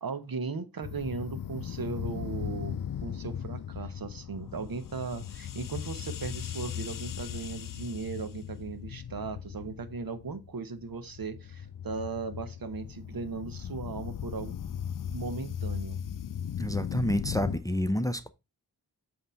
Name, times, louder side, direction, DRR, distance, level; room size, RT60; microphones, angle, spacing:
voice 1, 0.0-14.6 15.1-16.0, right 4 dB, 65° right, 0.9 m, -37 dB
sound 1, 0.8-17.6, left 9 dB, 60° left, 0.5 m, -38 dB
voice 2, 16.6-18.3, equal, 10° left, 0.6 m, -29 dB
7.9 x 2.9 x 5.1 m
wide cardioid pair, 50°, 38 cm